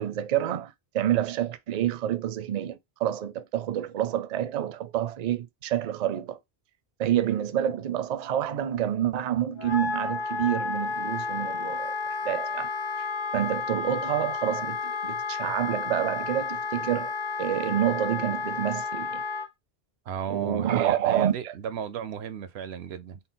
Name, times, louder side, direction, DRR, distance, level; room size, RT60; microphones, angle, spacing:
voice 1, 0.0-6.4 7.0-11.9 12.2-12.7 13.3-17.1 17.4-19.2 20.3-21.5, right 11 dB, 55° right, 0.5 m, -28 dB
Wind instrument woodwind instrument, 9.6-19.5, left 4 dB, 30° left, 0.6 m, -31 dB
voice 2, 20.1-23.2, right 8 dB, 90° right, 0.9 m, -34 dB
4.1 x 2.1 x 3.7 m
omnidirectional pair, 1.1 m